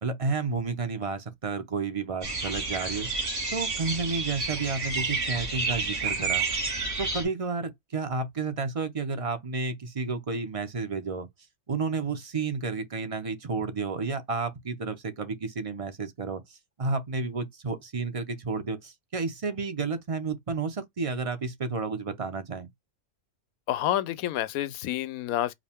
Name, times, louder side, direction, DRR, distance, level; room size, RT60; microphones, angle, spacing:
voice 1, 0.0-3.1 3.5-6.4 7.0-11.3 11.7-22.7, right 4 dB, 35° right, 0.6 m, -31 dB
sound 1, 2.2-7.2, right 3 dB, 55° right, 2.4 m, -30 dB
voice 2, 23.7-25.5, left 13 dB, 80° left, 1.0 m, -28 dB
4.9 x 2.2 x 3.5 m
omnidirectional pair, 1.5 m